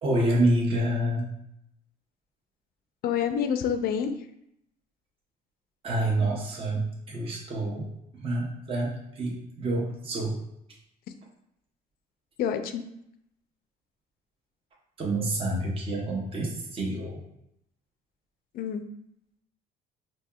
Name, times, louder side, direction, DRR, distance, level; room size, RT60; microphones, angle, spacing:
voice 1, 0.0-1.3 5.8-7.9 8.2-10.4 15.0-17.2, right 1 dB, 35° right, -3 dB, 0.8 m, -27 dB
voice 2, 3.0-4.1 12.4-12.8 18.5-18.8, left 8 dB, 65° left, 8 dB, 0.4 m, -27 dB
4.3 x 2.8 x 2.3 m, 0.78 s
cardioid pair, 110°, 17 cm